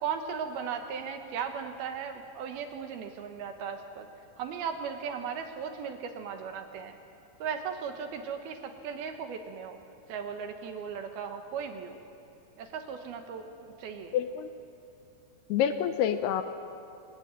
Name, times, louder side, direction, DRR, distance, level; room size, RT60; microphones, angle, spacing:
voice 1, 0.0-4.1 4.4-7.0 7.4-9.8 10.1-12.0 12.6-14.2, right 7 dB, 70° right, 6 dB, 2.8 m, -37 dB
voice 2, 14.1-14.5 15.5-16.4, left 9 dB, 80° left, 9 dB, 2.6 m, -27 dB
24.0 x 18.5 x 9.1 m, 2.6 s
omnidirectional pair, 5.1 m